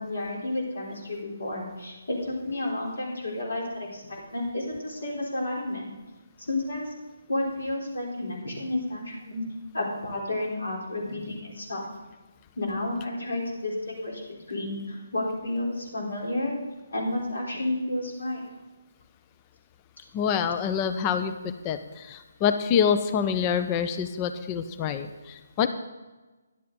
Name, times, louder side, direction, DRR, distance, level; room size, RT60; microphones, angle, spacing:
voice 1, 0.0-5.9 6.5-6.9 7.3-9.4 9.7-11.8 12.6-14.2 14.5-16.6 16.9-18.4, left 1 dB, 55° left, -2 dB, 3.8 m, -31 dB
voice 2, 20.1-25.7, left 7 dB, 20° left, 10 dB, 0.5 m, -26 dB
13.0 x 10.5 x 3.9 m, 1.2 s
figure-of-eight pair, 145°, 0 cm